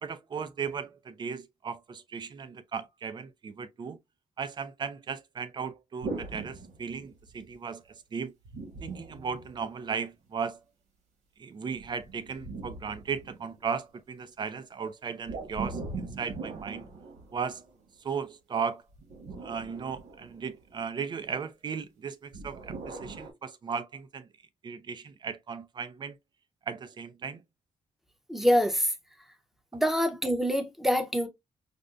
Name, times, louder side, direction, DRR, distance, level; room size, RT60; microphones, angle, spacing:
voice 1, 0.0-4.0 4.4-7.8 8.1-8.3 8.8-10.6 11.4-16.8 17.3-17.7 18.0-18.8 19.4-24.3 24.6-26.2 26.7-27.4, right 6 dB, 40° right, 0.6 m, -36 dB
sound 1, 6.0-7.4 8.5-10.0 11.7-13.8 15.3-17.8 18.9-20.8 22.3-23.3, right 3 dB, 85° right, 1.5 m, -41 dB
voice 2, 28.3-28.9 29.7-31.3, equal, ahead, 0.8 m, -25 dB
5.1 x 2.2 x 2.5 m
cardioid pair, 100°, 12 cm